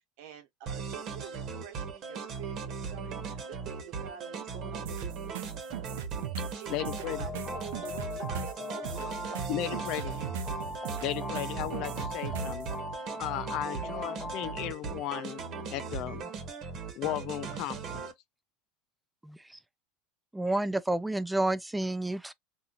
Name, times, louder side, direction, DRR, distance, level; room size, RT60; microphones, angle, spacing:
voice 1, 0.2-5.6 6.4-9.5 10.0-10.3 13.6-14.2, right 11 dB, 70° right, 1.1 m, -47 dB
sound 1, 0.7-18.1, right 5 dB, 45° right, 1.2 m, -38 dB
sound 2, 4.9-12.7, right 8 dB, 85° right, 0.7 m, -38 dB
voice 2, 6.7-7.2 9.5-10.1 11.0-12.7 13.2-15.4 15.7-16.2 17.0-18.0, left 14 dB, 55° left, 0.4 m, -35 dB
sound 3, 6.8-14.6, left 3 dB, 20° left, 0.7 m, -40 dB
voice 3, 20.3-22.3, right 1 dB, 5° right, 0.4 m, -29 dB
4.1 x 2.6 x 2.5 m
supercardioid pair, 130°, 0 cm